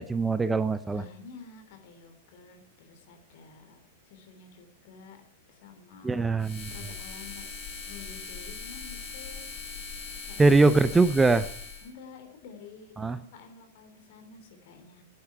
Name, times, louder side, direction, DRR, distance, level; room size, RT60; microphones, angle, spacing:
voice 1, 0.0-1.0 6.0-6.7 10.4-11.4 13.0-13.2, right 3 dB, 10° right, 14 dB, 0.6 m, -22 dB
voice 2, 0.9-5.2 5.5-7.5 7.9-9.7 10.2-11.0 11.8-15.0, left 5 dB, 50° left, 5 dB, 3.3 m, -49 dB
sound 1, 6.4-11.9, left 5 dB, 30° left, 7.6 m, -40 dB
10.5 x 10.5 x 9.4 m, 0.63 s
figure-of-eight pair, 95°, 0 cm